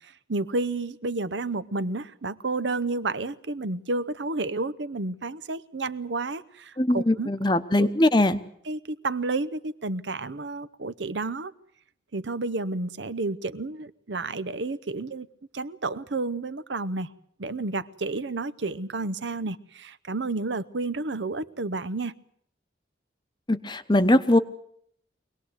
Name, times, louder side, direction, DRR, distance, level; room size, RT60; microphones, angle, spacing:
voice 1, 0.3-7.3 7.8-7.9 8.7-11.5 12.1-15.3 15.5-17.1 17.4-22.1, right 3 dB, 75° right, 0.9 m, -31 dB
voice 2, 6.8-8.4 23.5-24.4, left 1 dB, 25° left, 0.9 m, -21 dB
24.0 x 18.5 x 8.1 m
head